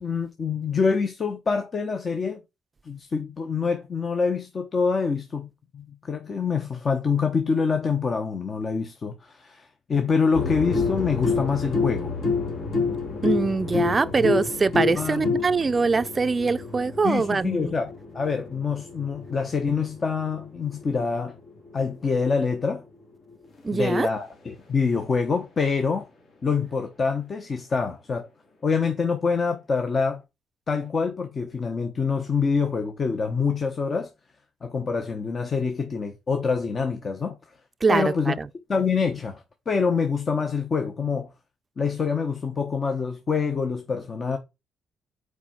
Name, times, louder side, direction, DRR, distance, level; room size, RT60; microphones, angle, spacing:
voice 1, 0.0-2.4 2.8-12.1 14.2-14.4 14.9-15.4 17.0-21.4 21.7-22.8 23.7-26.1 26.4-28.3 28.6-30.2 30.7-34.1 34.6-37.4 37.9-38.3 38.7-41.3 41.8-44.4, left 5 dB, 40° left, 1.0 m, -26 dB
sound 1, 10.3-22.2 23.6-23.7, left 4 dB, 60° left, 2.2 m, -29 dB
voice 2, 13.2-17.7 23.6-24.1 37.8-38.5, right 4 dB, 30° right, 0.4 m, -23 dB
4.9 x 4.8 x 5.8 m
cardioid pair, 90°, 0 cm